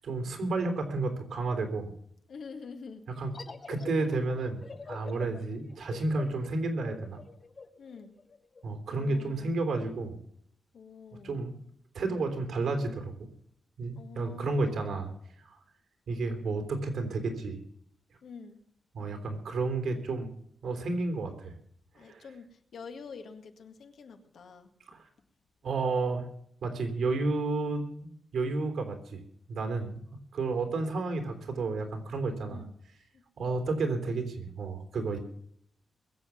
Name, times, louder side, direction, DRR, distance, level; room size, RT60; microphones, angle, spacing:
voice 1, 0.0-1.9 3.1-3.3 3.7-4.6 4.9-7.2 8.6-10.2 11.2-11.5 11.9-13.3 13.8-15.1 15.5-15.6 16.1-17.6 18.9-20.3 20.6-21.5 22.0-22.3 24.9-25.0 25.6-26.3 26.6-29.2 29.5-30.0 30.3-32.7 33.4-35.2, right 3 dB, 85° right, 6 dB, 3.6 m, -31 dB
voice 2, 2.3-3.0 5.2-5.5 7.8-8.1 8.9-9.6 10.7-11.5 14.0-15.0 18.2-18.6 21.9-24.7 29.7-30.0 32.5-32.7 33.1-33.2, left 5 dB, 80° left, 6 dB, 1.9 m, -47 dB
sound 1, 3.3-8.6, left 4 dB, 40° left, 1.3 m, -46 dB
21.5 x 7.9 x 7.2 m, 0.68 s
wide cardioid pair, 125°, 0 cm